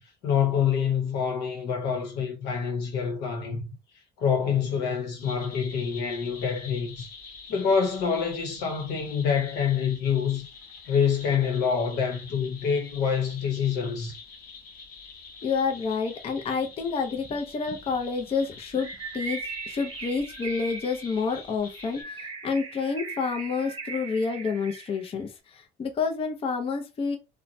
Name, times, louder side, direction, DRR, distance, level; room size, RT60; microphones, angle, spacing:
voice 1, 0.2-3.7 4.2-7.1 7.5-10.5 10.8-14.1, left 7 dB, 90° left, 0.9 m, -26 dB
sound 1, 5.2-22.0, left 5 dB, 60° left, 0.9 m, -46 dB
voice 2, 15.4-18.9 19.1-19.4 19.7-27.2, left 5 dB, 35° left, 0.5 m, -29 dB
Bird, 18.7-25.1, right 4 dB, 30° right, 0.7 m, -39 dB
3.0 x 2.2 x 2.5 m
cardioid pair, 110°, 17 cm